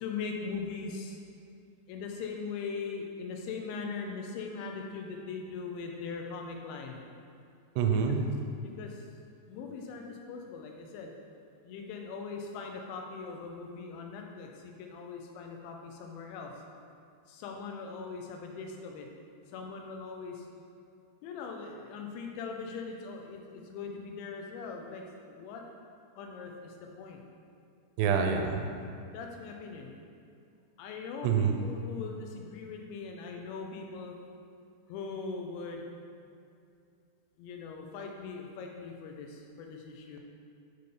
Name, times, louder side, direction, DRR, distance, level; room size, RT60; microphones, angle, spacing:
voice 1, 0.0-1.1 1.9-7.0 8.8-8.9 9.5-11.1 11.7-16.5 17.3-19.1 19.5-20.4 21.2-25.0 25.3-25.6 26.2-26.5 27.0-27.2 28.2-28.3 29.1-29.9 30.8-34.1 34.9-35.8 37.4-39.3 39.6-40.2, left 5 dB, 85° left, 2 dB, 3.0 m, -40 dB
voice 2, 7.8-8.2 28.0-28.7 31.2-31.6, right 6 dB, 80° right, 4 dB, 2.6 m, -26 dB
10.0 x 3.8 x 3.8 m, 2.5 s
omnidirectional pair, 5.2 m